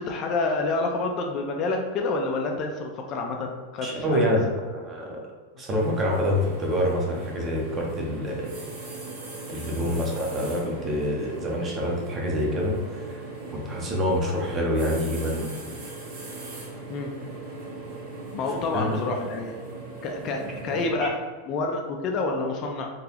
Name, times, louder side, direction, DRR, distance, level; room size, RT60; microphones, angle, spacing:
voice 1, 0.0-4.4 9.8-10.0 16.9-17.1 18.3-19.6 20.0-21.2 21.5-22.9, left 3 dB, 35° left, 2 dB, 0.4 m, -28 dB
voice 2, 3.8-5.2 5.6-8.6 9.5-13.2 13.5-15.5 18.7-19.0 20.3-20.4, equal, 25° right, -1 dB, 0.8 m, -26 dB
sound 1, 5.8-20.9, right 3 dB, 55° right, 1.5 m, -39 dB
3.8 x 2.8 x 2.9 m, 1.5 s
supercardioid pair, 150°, 0 cm